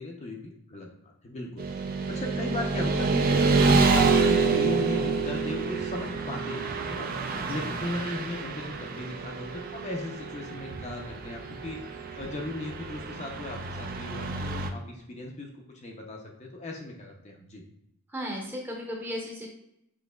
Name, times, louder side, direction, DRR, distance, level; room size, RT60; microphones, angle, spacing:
voice 1, 0.0-1.7 2.1-11.9 12.2-15.5 15.8-17.6, left 1 dB, 30° left, 0 dB, 0.5 m, -37 dB
Motorcycle / Traffic noise roadway noise, 1.6-14.7, right 4 dB, 40° right, 0.3 m, -27 dB
voice 2, 18.1-19.5, equal, 10° right, -1 dB, 0.7 m, -35 dB
6.1 x 2.8 x 2.2 m, 0.79 s
head